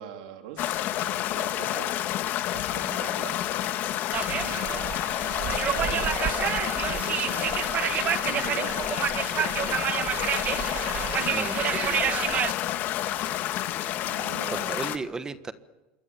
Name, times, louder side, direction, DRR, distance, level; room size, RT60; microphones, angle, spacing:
voice 1, 0.0-1.9 2.4-3.4 4.3-4.8 5.3-8.9 9.9-12.1 14.0-14.9, right 9 dB, 80° right, 4 dB, 3.4 m, -43 dB
sound 1, 0.6-15.0, left 12 dB, 45° left, 1.7 m, -29 dB
sound 2, 2.2-5.2 5.5-6.8, left 13 dB, 70° left, 2.5 m, -48 dB
voice 2, 2.8-3.2 5.9-6.2 11.3-11.7 14.5-15.5, right 4 dB, 15° right, 12 dB, 1.3 m, -36 dB
sound 3, 4.1-12.5, right 9 dB, 35° right, 1.2 m, -29 dB
27.5 x 23.0 x 7.1 m, 1.1 s
supercardioid pair, 130°, 5 cm